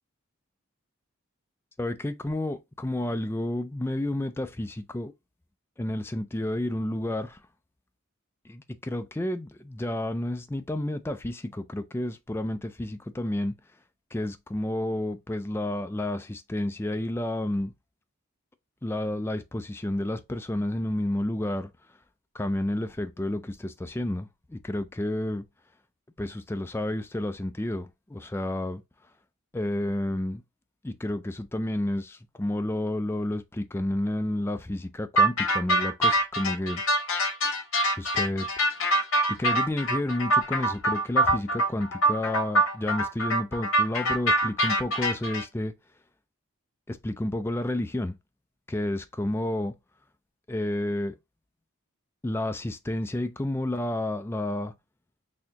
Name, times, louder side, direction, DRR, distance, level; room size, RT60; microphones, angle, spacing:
voice 1, 1.8-5.1 5.8-7.4 8.5-13.5 14.1-17.7 18.8-21.7 22.3-25.4 26.2-28.8 29.5-30.4 30.8-36.8 38.0-38.5 39.4-45.7 46.9-48.1 48.7-49.7 50.5-51.1 52.2-54.7, left 1 dB, 10° left, 0.3 m, -30 dB
sound 1, 35.2-45.4, right 1 dB, 80° left, 1.6 m, -24 dB
4.1 x 2.7 x 2.8 m
head